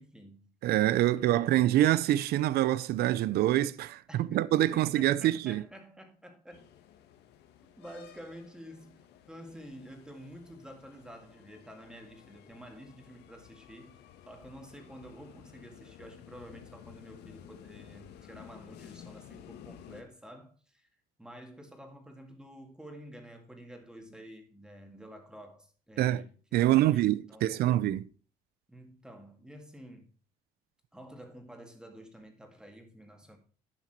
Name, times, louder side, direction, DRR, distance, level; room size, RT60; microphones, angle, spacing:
voice 1, 0.0-0.5 1.1-1.7 4.1-6.7 7.8-9.0 9.3-14.0 14.3-20.9 21.2-27.9 28.7-30.1 30.9-33.4, equal, 5° right, 2.1 m, -50 dB
voice 2, 0.6-5.6 26.0-26.2 26.5-28.0, right 14 dB, 70° right, 0.5 m, -25 dB
sound 1, 6.5-20.0, left 10 dB, 80° left, 1.3 m, -53 dB
10.5 x 6.1 x 4.5 m
cardioid pair, 110°, 17 cm